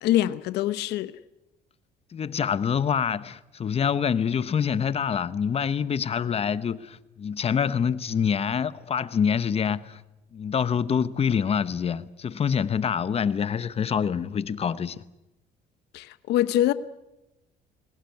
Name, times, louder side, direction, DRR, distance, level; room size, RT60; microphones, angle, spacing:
voice 1, 0.0-1.1 15.9-16.7, left 13 dB, 80° left, 0.9 m, -24 dB
voice 2, 2.1-10.0 10.3-15.0, left 7 dB, 35° left, 1.0 m, -26 dB
22.0 x 18.5 x 9.5 m
cardioid pair, 110°, 17 cm